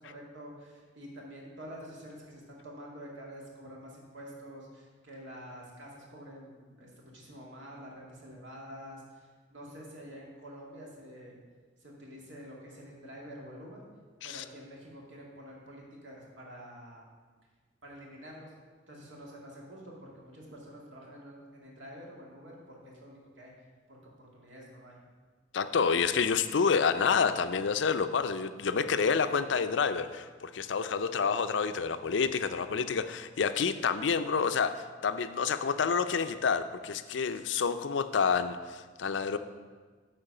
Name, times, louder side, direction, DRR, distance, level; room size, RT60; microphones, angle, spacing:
voice 1, 0.0-11.4 11.8-13.8 14.2-17.0 17.8-18.5 18.9-23.5 23.9-25.0, equal, 75° right, -2 dB, 2.2 m, -48 dB
voice 2, 25.5-39.4, left 5 dB, 70° left, 11 dB, 0.4 m, -28 dB
8.8 x 4.5 x 6.6 m, 1.4 s
head